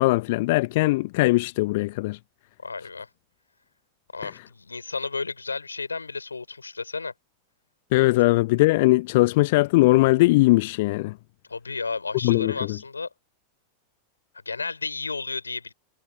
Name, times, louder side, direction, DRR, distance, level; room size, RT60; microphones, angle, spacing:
voice 1, 0.0-2.2 4.2-4.3 7.9-11.1 12.2-12.8, left 21 dB, 50° left, 1.2 m, -20 dB
voice 2, 2.6-3.1 4.1-7.1 11.5-13.1 14.4-15.7, left 4 dB, 80° left, 6.2 m, -32 dB
figure-of-eight pair, 90°, 0 cm